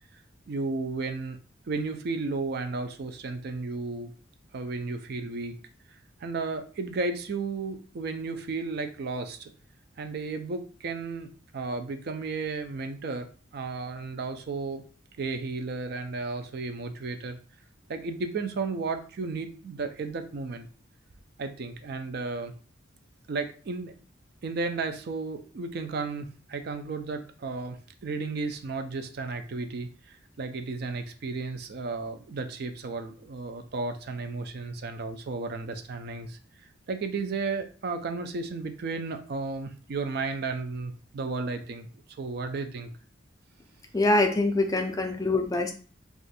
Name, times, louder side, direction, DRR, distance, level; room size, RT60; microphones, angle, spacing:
voice 1, 0.5-1.4 1.7-4.1 4.5-5.5 6.2-9.5 10.0-11.3 11.5-14.8 15.2-17.4 17.9-20.7 21.4-22.5 23.3-23.9 24.4-36.4 36.9-41.9 42.2-42.9, right 3 dB, 55° right, 8 dB, 0.4 m, -33 dB
voice 2, 43.9-45.7, left 2 dB, 20° left, 4 dB, 0.4 m, -24 dB
2.6 x 2.4 x 4.0 m, 0.39 s
head